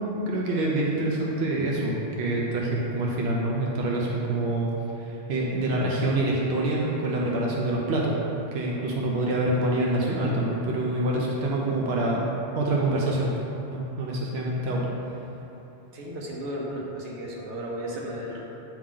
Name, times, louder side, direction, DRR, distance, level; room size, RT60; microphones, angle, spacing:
voice 1, 0.0-4.7 5.0-8.1 8.5-12.2 12.6-13.3 13.7-14.9, right 1 dB, 70° right, -3 dB, 0.9 m, -26 dB
voice 2, 15.9-18.4, equal, 85° right, -3 dB, 1.2 m, -34 dB
8.4 x 3.0 x 3.7 m, 3.0 s
omnidirectional pair, 1.1 m